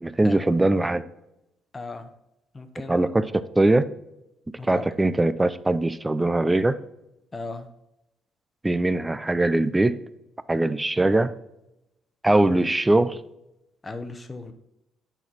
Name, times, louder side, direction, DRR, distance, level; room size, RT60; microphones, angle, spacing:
voice 1, 0.0-1.0 2.9-3.9 4.6-6.8 8.6-10.0 10.5-11.3 12.2-13.2, right 2 dB, 15° right, 14 dB, 0.4 m, -21 dB
voice 2, 1.7-2.1 2.5-3.1 4.6-4.8 7.3-7.7 13.8-14.5, left 3 dB, 25° left, 8 dB, 0.8 m, -36 dB
9.0 x 4.3 x 4.1 m, 0.89 s
cardioid pair, 85°, 0 cm